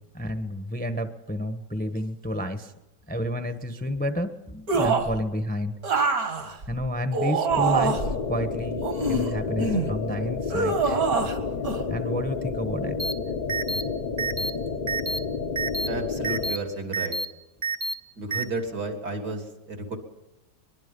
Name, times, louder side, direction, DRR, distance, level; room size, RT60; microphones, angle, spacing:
voice 1, 0.0-2.7 3.1-5.7 6.7-11.0 11.9-13.0, equal, 5° left, 8 dB, 1.0 m, -30 dB
sound 1, 4.7-5.2 5.8-8.2 8.8-9.9 10.5-11.4 11.6-11.8, right 4 dB, 60° right, 2.3 m, -25 dB
sound 2, 7.5-16.6, left 4 dB, 35° left, 0.8 m, -30 dB
sound 3, 13.0-13.1 13.5-13.8 14.2-14.5 14.9-15.2 15.6-15.9 16.2-16.6 16.9-17.3 17.6-17.9 18.3-18.4, right 2 dB, 30° right, 0.9 m, -28 dB
voice 2, 15.9-17.2 18.2-20.0, right 2 dB, 75° right, 4 dB, 3.7 m, -32 dB
22.5 x 22.5 x 5.4 m, 0.99 s
omnidirectional pair, 1.8 m